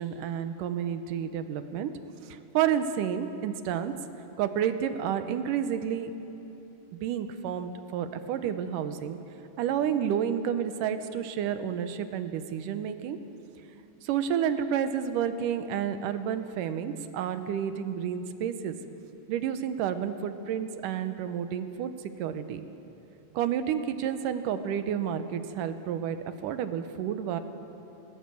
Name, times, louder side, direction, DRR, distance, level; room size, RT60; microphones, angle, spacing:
voice 1, 0.0-1.9 2.2-3.9 4.4-6.1 6.9-9.2 9.6-13.2 14.0-18.8 19.3-21.9 22.2-22.6 23.3-27.4, right 9 dB, 75° right, 10 dB, 2.3 m, -30 dB
19.5 x 19.0 x 7.1 m, 3.0 s
omnidirectional pair, 4.0 m